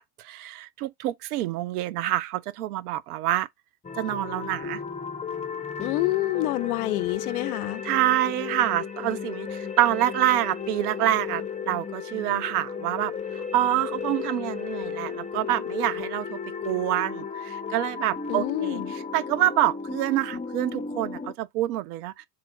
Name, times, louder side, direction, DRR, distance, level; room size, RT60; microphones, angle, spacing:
voice 1, 0.0-3.5 4.0-4.8 7.8-13.1 13.5-16.4 16.6-18.8 19.1-22.3, right 14 dB, 65° right, 0.6 m, -26 dB
sound 1, 3.8-21.3, left 6 dB, 15° left, 0.7 m, -34 dB
voice 2, 5.8-7.8 18.3-18.9, left 18 dB, 65° left, 0.5 m, -27 dB
3.7 x 2.4 x 4.3 m
hypercardioid pair, 80°, 49 cm